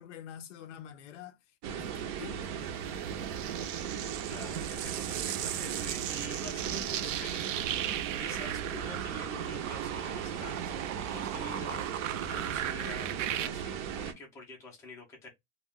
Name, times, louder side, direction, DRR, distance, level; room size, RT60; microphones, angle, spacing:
voice 1, 0.0-1.4 1.7-2.5, left 9 dB, 75° left, 0.6 m, -46 dB
sound 1, 1.6-14.1, right 8 dB, 40° right, 0.5 m, -37 dB
sound 2, 2.9-13.5, right 12 dB, 90° right, 0.6 m, -38 dB
voice 2, 4.3-7.6 7.9-15.3, left 1 dB, 10° left, 0.5 m, -47 dB
2.3 x 2.2 x 3.4 m
supercardioid pair, 160°, 37 cm